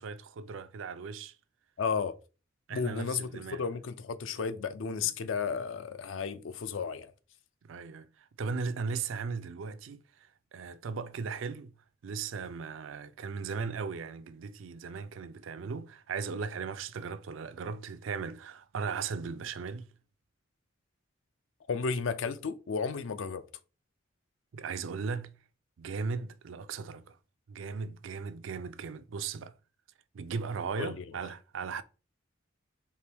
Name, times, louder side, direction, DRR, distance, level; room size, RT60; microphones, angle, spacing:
voice 1, 0.0-1.3 2.7-3.6 5.0-5.1 7.6-11.7 12.0-19.9 24.5-25.3 25.8-27.2 27.5-29.5 30.1-31.8, right 5 dB, 75° right, 0.4 m, -37 dB
voice 2, 1.8-2.1 2.7-7.1 21.7-23.4 30.8-31.1, left 5 dB, 75° left, 0.4 m, -33 dB
4.5 x 2.9 x 3.4 m
head